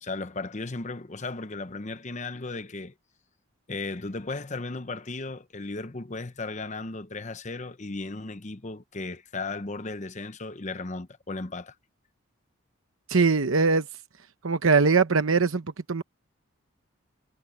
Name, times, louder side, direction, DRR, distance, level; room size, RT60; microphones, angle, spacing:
voice 1, 0.0-2.9 3.7-11.7, left 3 dB, 35° left, 0.8 m, -35 dB
voice 2, 13.1-13.9 14.4-16.0, right 4 dB, 65° right, 0.9 m, -22 dB
head